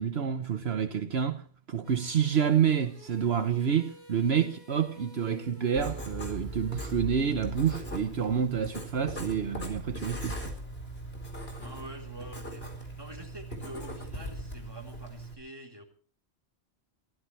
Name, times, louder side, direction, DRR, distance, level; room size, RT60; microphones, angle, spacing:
voice 1, 0.0-10.5, right 8 dB, 70° right, 1.2 m, -28 dB
sound 1, 1.8-7.0, left 1 dB, 85° left, 7.5 m, -53 dB
Writing, 5.8-15.3, right 1 dB, 60° left, 4.9 m, -39 dB
voice 2, 11.6-15.9, right 1 dB, 20° right, 3.9 m, -46 dB
25.0 x 15.5 x 3.3 m
omnidirectional pair, 1.1 m